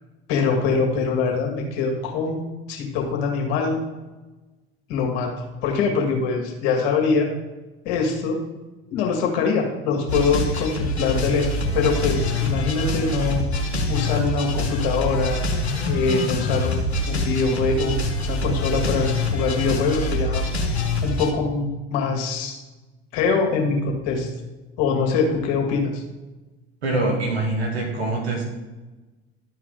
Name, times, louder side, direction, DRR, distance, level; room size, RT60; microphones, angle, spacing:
voice 1, 0.3-2.4 2.7-3.8 4.9-7.3 7.8-8.4 8.9-11.5 11.7-13.4 13.9-15.4 15.9-20.4 21.0-22.6 23.1-24.3 24.8-26.0, left 4 dB, 60° left, 1 dB, 2.2 m, -23 dB
sound 1, 10.1-21.3, left 1 dB, 90° left, 1.3 m, -25 dB
voice 2, 26.8-28.4, right 2 dB, 80° right, -1 dB, 2.5 m, -24 dB
12.0 x 4.8 x 3.9 m, 1.1 s
hypercardioid pair, 70°, 32 cm